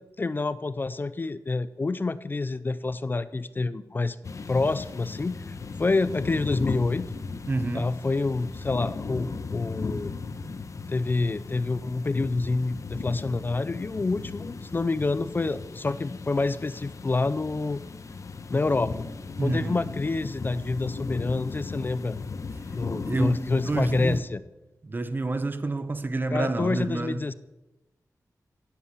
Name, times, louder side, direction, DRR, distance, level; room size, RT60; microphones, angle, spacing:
voice 1, 0.0-4.2 4.5-7.1 7.7-10.1 10.9-17.8 18.5-18.9 19.4-22.2 22.7-24.4 26.3-27.3, left 3 dB, 30° left, 0.5 m, -27 dB
sound 1, 4.2-24.2, left 4 dB, 55° left, 1.1 m, -37 dB
voice 2, 7.5-7.9 19.4-19.8 23.1-24.2 24.8-27.2, right 2 dB, 30° right, 0.9 m, -28 dB
18.0 x 8.4 x 6.8 m
wide cardioid pair, 130°, 6 cm